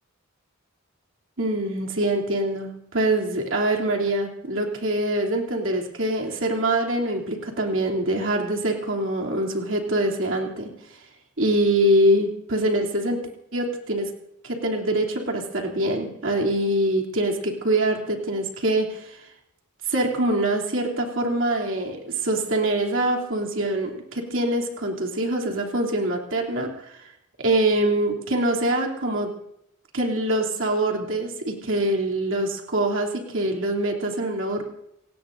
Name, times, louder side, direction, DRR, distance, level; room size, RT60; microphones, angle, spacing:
voice 1, 1.4-11.0 11.4-13.2 13.5-14.1 14.4-19.3 19.9-27.1 27.4-29.3 29.9-34.6, right 1 dB, 65° right, 0 dB, 3.0 m, -24 dB
29.0 x 17.5 x 2.7 m, 0.80 s
head